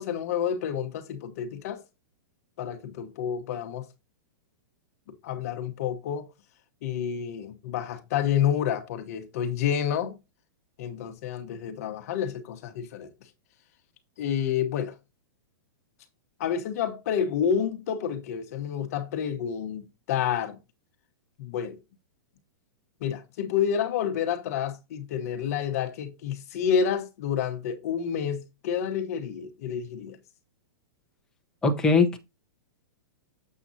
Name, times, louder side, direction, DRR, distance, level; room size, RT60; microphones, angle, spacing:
voice 1, 0.0-1.8 2.6-3.9 5.1-6.3 6.8-10.2 10.8-13.1 14.2-14.9 16.4-20.6 21.4-21.8 23.0-30.2, left 8 dB, 45° left, 1.1 m, -29 dB
voice 2, 31.6-32.2, left 4 dB, 5° left, 0.8 m, -21 dB
7.5 x 7.3 x 2.7 m
supercardioid pair, 170°, 12 cm